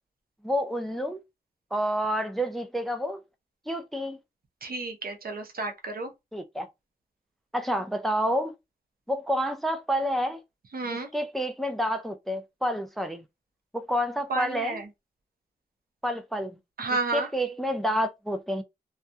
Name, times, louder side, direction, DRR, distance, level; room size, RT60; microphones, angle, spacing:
voice 1, 0.4-1.2 1.7-3.2 3.7-4.2 6.3-6.7 7.5-8.5 9.1-10.4 10.9-13.2 13.7-14.8 16.0-16.6 17.1-18.6, equal, ahead, 0.4 m, -29 dB
voice 2, 4.6-6.1 10.7-11.1 14.3-14.9 16.8-17.3, right 3 dB, 65° right, 0.7 m, -31 dB
2.2 x 2.2 x 2.7 m
cardioid pair, 55°, 16 cm